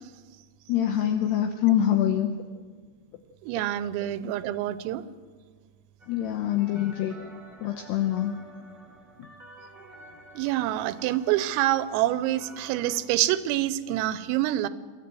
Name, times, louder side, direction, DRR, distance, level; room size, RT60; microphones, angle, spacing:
voice 1, 0.7-2.4 6.1-7.2 7.6-8.4 9.2-9.3, left 11 dB, 90° left, 6 dB, 2.4 m, -25 dB
voice 2, 3.4-5.0 10.4-14.7, right 14 dB, 85° right, 14 dB, 3.4 m, -26 dB
sound 1, 6.0-13.0, right 2 dB, 20° right, 1.2 m, -50 dB
24.5 x 14.5 x 7.6 m, 1.5 s
omnidirectional pair, 6.0 m